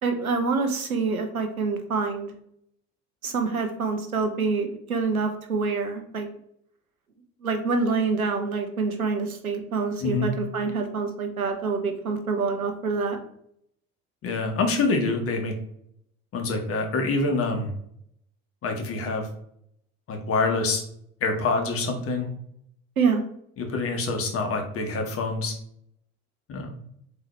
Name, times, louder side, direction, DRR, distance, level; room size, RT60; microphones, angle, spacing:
voice 1, 0.0-2.3 3.2-6.3 7.4-13.2 23.0-23.2, right 4 dB, 85° right, 5 dB, 0.6 m, -26 dB
voice 2, 10.0-10.3 14.2-15.5 16.3-17.7 18.6-19.3 20.1-20.8 21.2-22.3 23.6-25.5 26.5-26.7, left 3 dB, 35° left, 4 dB, 0.9 m, -26 dB
3.8 x 2.9 x 3.0 m, 0.71 s
figure-of-eight pair, 60°, 41 cm